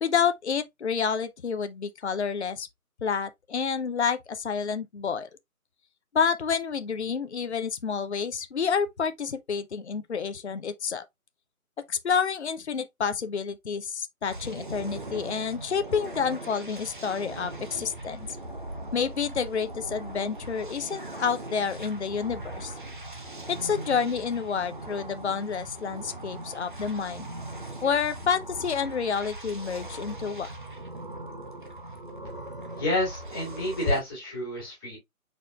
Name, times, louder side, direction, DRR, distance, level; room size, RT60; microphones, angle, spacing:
voice 1, 0.0-2.7 3.0-5.3 6.1-11.1 11.9-18.3 18.9-22.7 23.5-27.3 27.8-30.5, left 6 dB, 50° left, 0.5 m, -29 dB
sound 1, 14.3-34.0, right 1 dB, 35° right, 0.6 m, -40 dB
voice 2, 32.8-35.0, left 1 dB, 15° left, 1.8 m, -29 dB
5.1 x 4.2 x 2.2 m
figure-of-eight pair, 160°, 44 cm